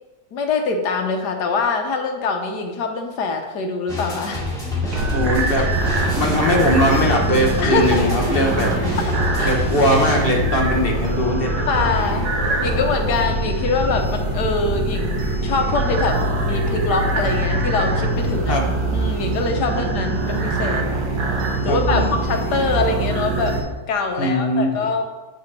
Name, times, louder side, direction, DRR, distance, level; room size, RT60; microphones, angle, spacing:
voice 1, 0.3-4.5 7.6-8.4 9.4-9.6 11.7-12.3 12.6-18.6 18.9-20.9 21.6-23.6 23.9-25.0, left 3 dB, 75° left, 4 dB, 1.5 m, -23 dB
sound 1, 3.9-15.2, left 3 dB, ahead, 2.1 m, -29 dB
Spaceship without a crew, 4.9-23.6, right 2 dB, 70° right, 1.6 m, -23 dB
voice 2, 5.1-5.7 6.2-9.0 9.4-11.7 18.5-18.7 21.7-22.1 24.2-24.7, equal, 40° left, 0 dB, 1.0 m, -20 dB
8.2 x 7.3 x 3.3 m, 1.2 s
omnidirectional pair, 1.8 m